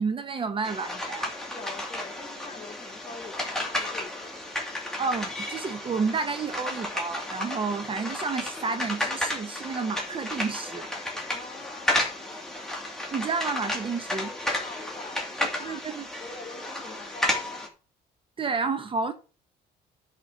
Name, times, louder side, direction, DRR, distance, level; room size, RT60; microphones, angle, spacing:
voice 1, 0.0-1.3 5.0-10.9 13.1-14.3 15.6-16.0 18.4-19.1, right 4 dB, 30° right, 0.9 m, -30 dB
sound 1, 0.6-17.7, left 1 dB, 5° left, 2.5 m, -32 dB
voice 2, 1.5-4.5 11.3-12.4 14.2-15.8 16.2-17.7, left 3 dB, 30° left, 2.3 m, -44 dB
10.5 x 4.4 x 6.2 m
cardioid pair, 110°, 17 cm